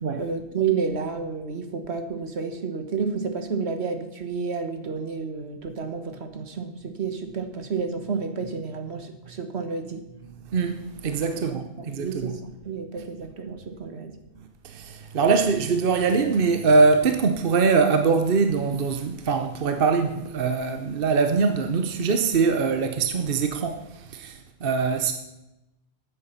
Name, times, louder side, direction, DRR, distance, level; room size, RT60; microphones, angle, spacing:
voice 1, 0.2-10.0 11.5-14.1, right 5 dB, 75° right, 1.6 m, -30 dB
voice 2, 10.4-12.4 14.6-25.1, right 4 dB, 60° right, 1.0 m, -23 dB
9.9 x 8.6 x 7.1 m
omnidirectional pair, 1.1 m